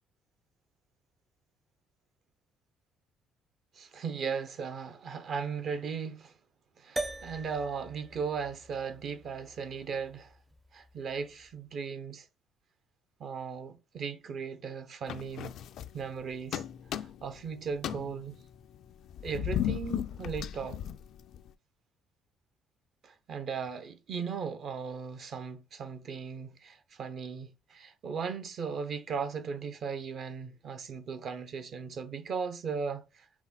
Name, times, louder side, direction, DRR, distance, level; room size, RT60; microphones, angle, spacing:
voice 1, 3.7-6.3 6.8-10.3 10.7-12.3 13.2-15.5 15.9-16.6 17.0-18.4 19.2-20.8 23.0-33.3, right 6 dB, 60° right, 0.7 m, -37 dB
sound 1, 7.0-11.5, right 2 dB, 15° right, 0.4 m, -42 dB
sound 2, 15.1-16.2 16.5-17.4 17.7-21.5, left 10 dB, 65° left, 0.3 m, -36 dB
5.8 x 2.1 x 3.9 m
supercardioid pair, 70°, 0 cm